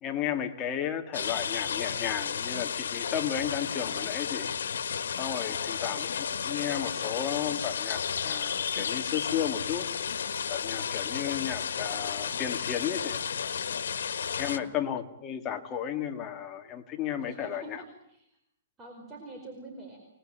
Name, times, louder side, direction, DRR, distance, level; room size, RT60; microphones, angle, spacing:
voice 1, 0.0-4.5 5.2-9.9 10.5-13.2 14.4-17.8, left 9 dB, 20° left, 4 dB, 2.2 m, -33 dB
sound 1, 1.1-14.6, left 7 dB, 90° left, 1.6 m, -32 dB
voice 2, 5.5-5.9 14.4-14.7 17.2-18.3 18.8-20.0, right 2 dB, 15° right, 1 dB, 4.9 m, -46 dB
28.5 x 20.5 x 9.0 m, 0.76 s
hypercardioid pair, 165°, 0 cm